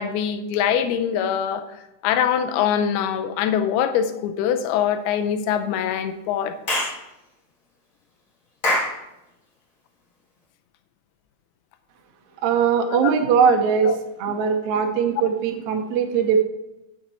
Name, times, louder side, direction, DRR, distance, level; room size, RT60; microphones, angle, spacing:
voice 1, 0.0-1.7 2.0-6.6 12.9-13.0 13.8-14.0, left 8 dB, 80° left, 8 dB, 2.6 m, -23 dB
Clapping / Chirp tweet, 6.7-7.0 8.6-9.0, left 1 dB, 40° left, 2.3 m, -22 dB
voice 2, 12.4-13.9 14.2-16.4, right 6 dB, 75° right, 4 dB, 1.7 m, -20 dB
8.7 x 6.7 x 4.2 m, 0.92 s
omnidirectional pair, 4.5 m